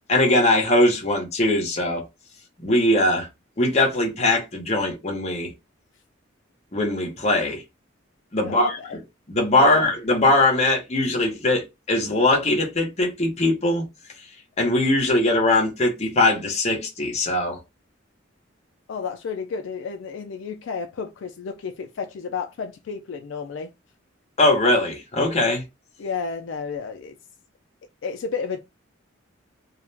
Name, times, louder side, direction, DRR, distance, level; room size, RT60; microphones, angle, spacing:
voice 1, 0.1-2.0 2.6-3.3 3.6-5.5 6.7-7.6 8.3-8.8 9.3-13.9 14.6-17.6 24.4-25.6, left 1 dB, 35° left, 0.7 m, -21 dB
voice 2, 8.4-9.0 9.6-9.9 18.9-23.7 26.0-27.1 28.0-28.6, left 5 dB, 65° left, 0.3 m, -32 dB
2.3 x 2.0 x 3.2 m
head